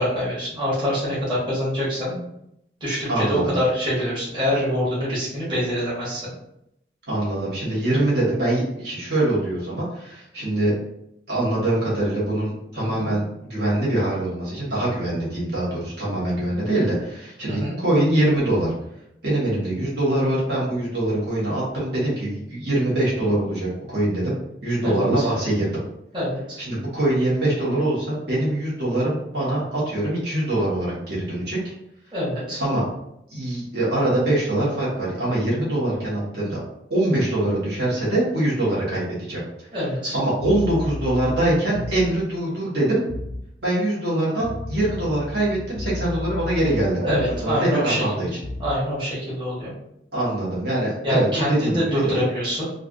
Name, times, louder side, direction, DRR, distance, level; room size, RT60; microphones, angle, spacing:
voice 1, 0.0-2.2 2.8-6.3 12.8-13.1 17.5-17.8 24.8-25.3 26.1-26.6 32.1-32.6 39.7-40.1 47.0-48.0 48.6-49.7 51.0-52.6, equal, 25° right, -9 dB, 1.2 m, -25 dB
voice 2, 3.1-3.6 7.1-10.7 11.3-13.2 13.5-18.7 19.2-24.3 24.6-25.7 26.6-31.7 32.6-32.8 33.3-36.6 36.9-39.4 40.1-43.0 43.6-47.2 47.4-48.3 50.1-52.2, right 1 dB, 70° right, -8 dB, 1.4 m, -23 dB
sound 1, 40.4-42.3 43.1-43.5 44.4-47.6 48.4-48.8, left 2 dB, 65° left, 0.4 m, -32 dB
3.3 x 2.4 x 2.5 m, 0.80 s
head